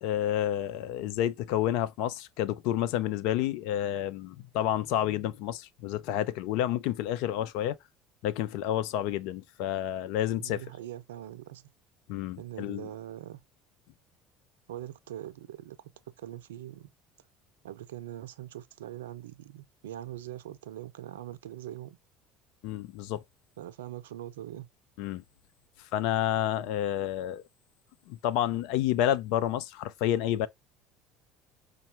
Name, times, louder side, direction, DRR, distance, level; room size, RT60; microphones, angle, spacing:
voice 1, 0.0-7.8 8.2-10.6 12.1-12.9 22.6-23.2 25.0-25.2 25.9-27.4 28.1-30.5, left 11 dB, 65° left, 0.5 m, -29 dB
voice 2, 10.4-11.6 12.4-13.4 14.7-15.9 16.2-16.9 17.6-22.0 23.6-24.7, right 12 dB, 80° right, 0.4 m, -42 dB
5.4 x 2.2 x 2.9 m
hypercardioid pair, 70°, 0 cm